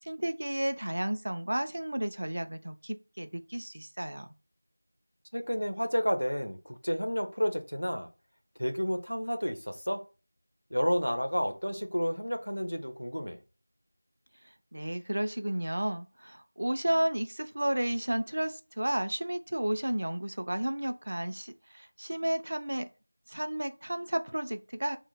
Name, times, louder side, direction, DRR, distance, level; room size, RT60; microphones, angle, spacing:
voice 1, 0.0-4.3 14.7-22.9 23.3-25.0, right 1 dB, 45° right, 0.3 m, -32 dB
voice 2, 5.3-8.1 8.6-10.0 10.7-13.4, equal, 85° left, 0.7 m, -31 dB
2.8 x 2.1 x 4.0 m
figure-of-eight pair, 175°, 0 cm